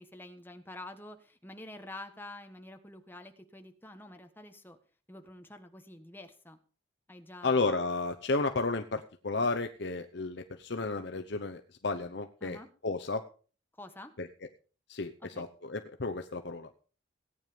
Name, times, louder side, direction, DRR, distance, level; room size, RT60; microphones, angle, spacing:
voice 1, 0.0-4.8 5.1-6.6 7.1-7.7 12.4-12.7 13.8-14.1 15.2-15.5, left 1 dB, 10° left, 6 dB, 1.3 m, -48 dB
voice 2, 7.4-12.6 12.8-13.2 14.2-14.3 14.9-16.7, left 3 dB, 55° left, 6 dB, 0.8 m, -32 dB
17.0 x 9.3 x 5.1 m, 0.40 s
head